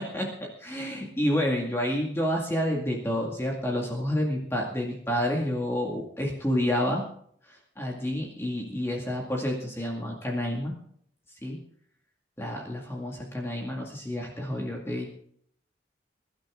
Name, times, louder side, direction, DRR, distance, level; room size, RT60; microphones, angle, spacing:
voice 1, 0.0-7.0 7.5-10.7 11.4-11.6 12.4-15.1, equal, 15° left, -1 dB, 2.2 m, -29 dB
22.5 x 12.0 x 3.8 m, 0.63 s
head